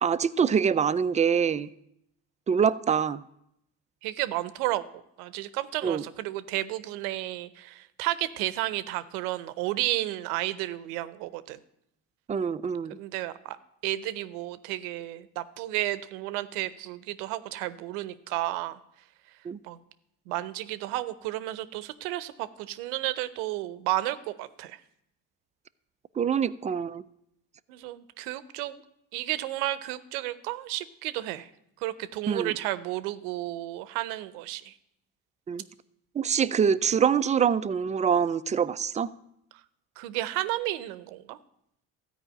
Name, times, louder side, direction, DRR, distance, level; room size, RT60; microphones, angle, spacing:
voice 1, 0.0-1.7 2.5-3.2 5.8-6.0 12.3-13.0 19.4-19.6 26.2-27.0 32.3-32.5 35.5-35.6 36.2-39.1, right 7 dB, 20° right, 14 dB, 0.3 m, -25 dB
voice 2, 4.0-11.6 13.0-13.6 13.8-18.8 19.6-19.8 20.3-24.8 27.7-28.8 29.1-31.5 31.8-34.7 40.0-41.4, right 16 dB, 90° right, 15 dB, 0.7 m, -32 dB
13.5 x 4.9 x 8.8 m, 0.79 s
supercardioid pair, 75°, 44 cm